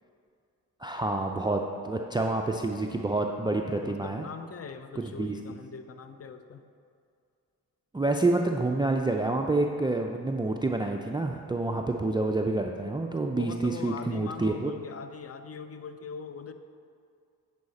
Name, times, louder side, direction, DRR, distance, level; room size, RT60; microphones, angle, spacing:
voice 1, 0.8-4.3 5.2-5.4 7.9-14.7, right 2 dB, 10° right, 2 dB, 0.4 m, -28 dB
voice 2, 3.8-6.6 13.3-16.5, left 5 dB, 35° left, 9 dB, 0.6 m, -41 dB
9.4 x 4.9 x 4.2 m, 2.3 s
supercardioid pair, 50°, 41 cm